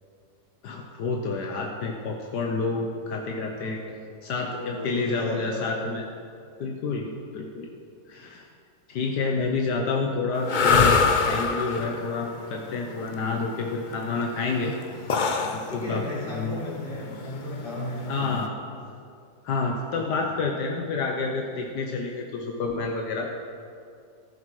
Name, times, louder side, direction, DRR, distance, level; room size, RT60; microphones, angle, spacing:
voice 1, 0.6-3.8 4.2-6.0 6.6-7.7 8.1-8.5 8.9-10.9 11.2-14.7 15.5-16.6 18.1-18.5 19.4-23.3, left 4 dB, 80° left, 1 dB, 1.6 m, -29 dB
voice 2, 3.6-3.9 4.5-5.9 15.5-18.4 20.0-20.3, left 1 dB, 30° left, -7 dB, 4.0 m, -35 dB
sound 1, 10.4-18.5, left 5 dB, 50° left, 0.6 m, -25 dB
14.0 x 12.5 x 4.8 m, 2.4 s
omnidirectional pair, 1.8 m